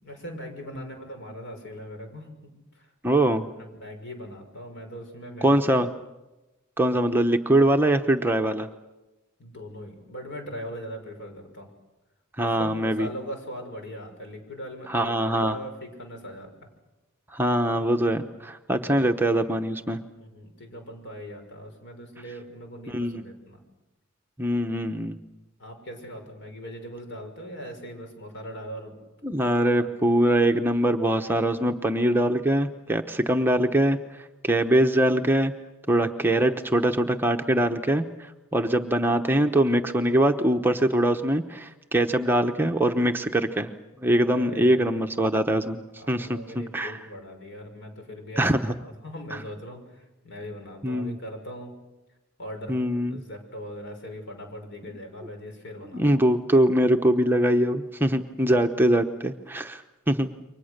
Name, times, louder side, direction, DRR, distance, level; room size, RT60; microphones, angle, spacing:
voice 1, 0.0-2.3 2.7-2.8 3.6-5.6 9.4-11.7 12.4-16.5 18.9-19.2 20.2-23.6 25.6-29.0 29.7-29.9 44.3-45.1 46.0-48.5 48.7-51.8 52.4-56.2, equal, 60° left, 4 dB, 6.1 m, -40 dB
voice 2, 3.0-3.5 5.4-5.9 6.8-8.7 12.4-13.1 14.9-15.6 17.3-20.0 22.9-23.2 24.4-25.2 29.2-34.0 34.4-35.5 35.9-43.7 44.0-45.8 46.1-47.0 48.4-48.7 50.8-51.2 52.7-53.2 55.9-60.3, right 1 dB, 10° right, 4 dB, 0.9 m, -23 dB
29.0 x 24.0 x 6.6 m, 1.0 s
head